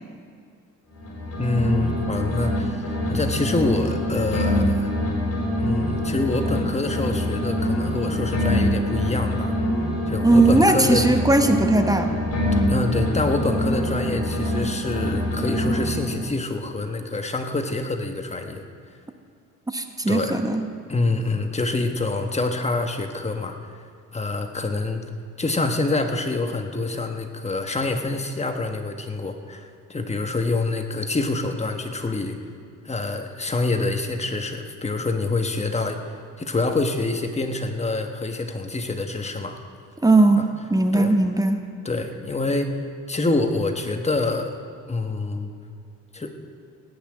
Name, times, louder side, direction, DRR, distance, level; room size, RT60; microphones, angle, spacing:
sound 1, 0.9-2.6 2.8-6.6 6.8-10.6 10.8-14.6 14.8-16.3, left 1 dB, 55° left, 4.5 m, -25 dB
voice 1, 1.4-4.9 5.6-9.6 10.1-11.0 12.7-18.6 20.1-20.4 20.9-23.6 24.1-25.0 25.4-32.4 32.8-39.6 40.4-40.5 40.9-41.1 41.8-42.8 43.1-44.5 44.9-45.5 46.1-46.3, left 2 dB, 20° left, 5 dB, 1.3 m, -26 dB
voice 2, 10.2-12.2 19.7-20.7 40.0-41.6, right 2 dB, 10° right, 6 dB, 1.0 m, -18 dB
17.5 x 5.9 x 8.7 m, 2.2 s
cardioid pair, 90°, 30 cm